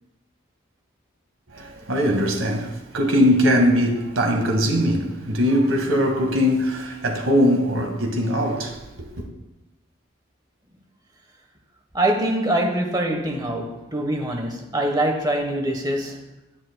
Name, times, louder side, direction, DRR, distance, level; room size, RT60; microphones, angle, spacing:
voice 1, 1.5-9.2, equal, 80° right, 1.6 m, -21 dB
voice 2, 11.9-16.3, right 1 dB, 20° right, 1.0 m, -24 dB
19.0 x 7.5 x 2.2 m
head